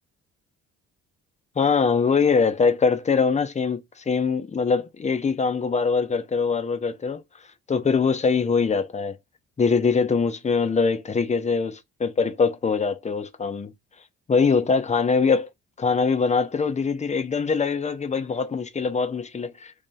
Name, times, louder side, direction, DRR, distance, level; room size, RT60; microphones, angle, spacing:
voice 1, 1.6-7.2 7.7-9.2 9.6-13.7 14.3-15.5 15.8-19.7, left 5 dB, 25° left, 0.6 m, -23 dB
3.0 x 2.7 x 3.8 m
cardioid pair, 90°, 30 cm